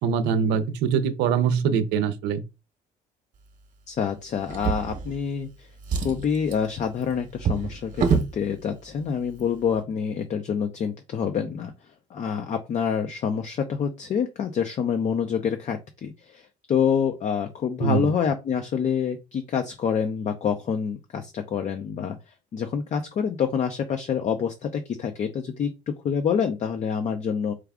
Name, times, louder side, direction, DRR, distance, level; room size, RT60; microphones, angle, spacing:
voice 1, 0.0-2.4 17.8-18.1, right 7 dB, 90° right, 0.6 m, -23 dB
voice 2, 3.9-5.7 6.0-11.7 12.1-27.5, left 7 dB, 45° left, 0.5 m, -27 dB
Drawer open or close, 4.5-5.5 5.8-8.4 9.3-9.4 9.8-9.9, right 6 dB, 50° right, 0.9 m, -27 dB
4.7 x 2.3 x 3.5 m
cardioid pair, 110°, 17 cm